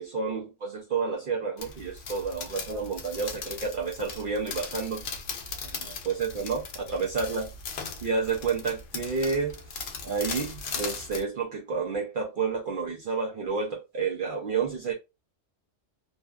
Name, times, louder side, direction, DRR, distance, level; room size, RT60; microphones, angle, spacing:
voice 1, 0.0-5.0 5.6-7.5 8.0-14.9, right 5 dB, 55° right, 0.6 m, -30 dB
sound 1, 1.6-11.2, left 5 dB, 60° left, 0.6 m, -38 dB
2.6 x 2.2 x 2.2 m
omnidirectional pair, 1.2 m